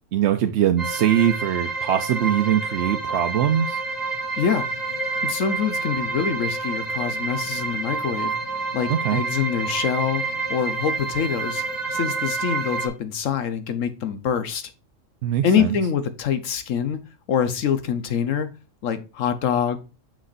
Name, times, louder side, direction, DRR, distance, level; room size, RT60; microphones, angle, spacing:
voice 1, 0.1-3.8 8.9-9.2 15.2-15.8, right 10 dB, 70° right, 0.8 m, -22 dB
sound 1, 0.8-12.9, right 4 dB, 15° left, 2.4 m, -28 dB
voice 2, 5.2-8.3 8.7-10.2 10.5-11.6 11.9-14.6 15.4-17.0 17.3-18.5 18.8-19.8, left 7 dB, 90° left, 1.2 m, -25 dB
6.4 x 6.1 x 2.5 m
omnidirectional pair, 1.3 m